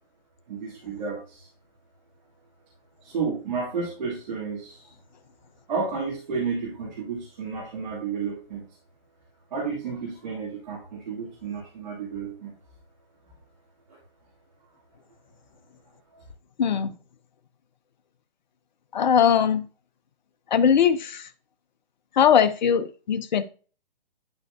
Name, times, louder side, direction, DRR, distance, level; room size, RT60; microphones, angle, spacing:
voice 1, 0.5-1.5 3.0-4.9 5.7-8.6 9.5-12.5 13.9-14.0, right 5 dB, 50° right, -4 dB, 2.6 m, -31 dB
voice 2, 16.6-16.9 18.9-19.6 20.5-21.3 22.2-23.4, left 8 dB, 50° left, 11 dB, 0.8 m, -20 dB
11.0 x 4.4 x 2.7 m, 0.37 s
hypercardioid pair, 145°, 29 cm